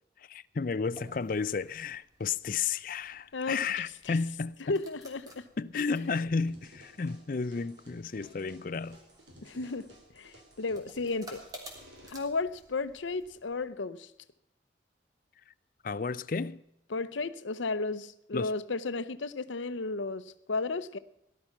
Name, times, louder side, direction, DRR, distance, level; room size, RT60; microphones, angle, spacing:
voice 1, 0.2-4.8 5.6-9.0 15.5-15.6 15.8-16.6 18.3-18.5, left 5 dB, 45° left, 0.4 m, -32 dB
sound 1, 0.6-13.7, equal, 20° right, 3.1 m, -55 dB
voice 2, 3.3-4.2 4.7-5.4 5.7-5.9 9.4-11.4 12.1-14.1 16.9-21.0, left 3 dB, 90° left, 0.7 m, -34 dB
sound 2, 6.5-12.1, equal, 85° right, 4.8 m, -56 dB
18.0 x 12.0 x 5.9 m
head